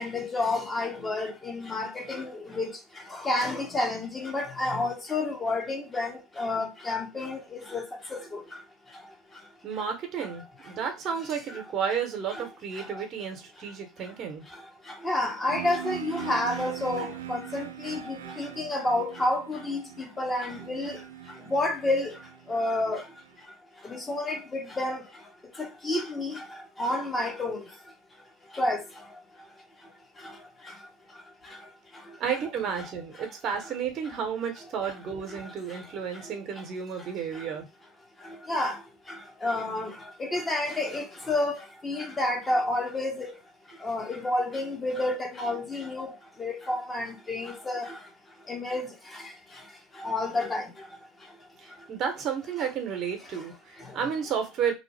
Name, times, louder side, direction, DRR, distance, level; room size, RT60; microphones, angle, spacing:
voice 1, 0.0-2.7 3.2-7.8 15.0-21.0 21.5-22.1 22.5-23.0 23.9-25.0 25.8-26.4 26.8-27.6 28.6-28.8 38.5-38.7 39.4-39.9 40.2-41.6 41.8-43.3 43.8-46.1 46.4-47.9 48.5-48.9 50.0-50.6, left 2 dB, 20° left, 1.0 m, -29 dB
voice 2, 9.6-14.4 32.2-37.7 51.9-54.7, right 7 dB, 50° right, 0.8 m, -32 dB
sound 1, 15.5-23.3, right 12 dB, 85° right, 0.3 m, -41 dB
2.8 x 2.0 x 3.2 m
hypercardioid pair, 80°, 0 cm